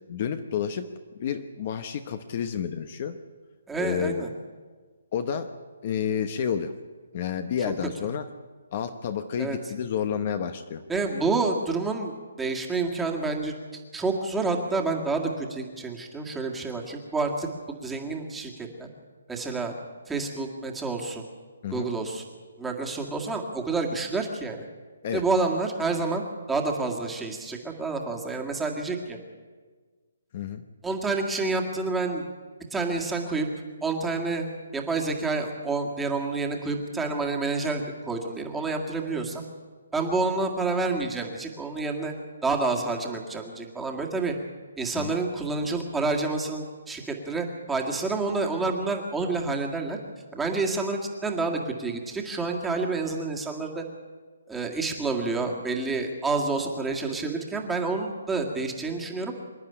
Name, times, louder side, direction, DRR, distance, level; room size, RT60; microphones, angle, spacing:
voice 1, 0.1-0.9 1.1-3.2 3.8-4.2 5.1-5.5 5.8-6.7 7.1-8.3 8.7-10.8 21.6-21.9 25.0-25.2 30.3-30.6 45.0-45.2, left 8 dB, 35° left, 9 dB, 1.0 m, -30 dB
voice 2, 3.7-4.3 9.4-9.6 10.9-17.5 17.8-18.9 19.3-19.7 20.1-21.2 21.7-22.2 22.6-24.6 25.1-26.2 26.5-29.2 30.8-32.3 32.7-33.5 33.8-34.5 34.7-39.4 39.9-42.1 42.4-44.3 44.8-50.0 50.3-53.8 54.5-59.3, right 3 dB, 5° right, 0 dB, 2.0 m, -28 dB
25.5 x 10.5 x 10.0 m, 1.5 s
hypercardioid pair, 165°, 0 cm